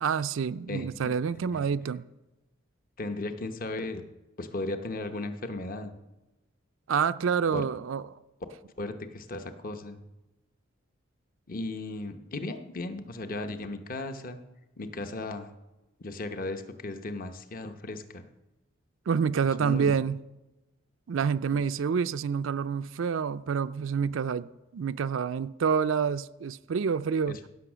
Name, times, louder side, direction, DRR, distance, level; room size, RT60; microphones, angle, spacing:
voice 1, 0.0-2.0 6.9-8.0 19.1-20.2 21.1-27.4, right 6 dB, 70° right, 0.4 m, -28 dB
voice 2, 0.7-1.1 3.0-4.0 4.4-5.9 7.5-7.7 8.8-10.0 11.5-14.4 14.8-15.5 16.0-18.3 19.6-19.9 21.5-21.6 27.3-27.5, left 2 dB, 45° left, 0.9 m, -36 dB
16.5 x 6.3 x 6.2 m
head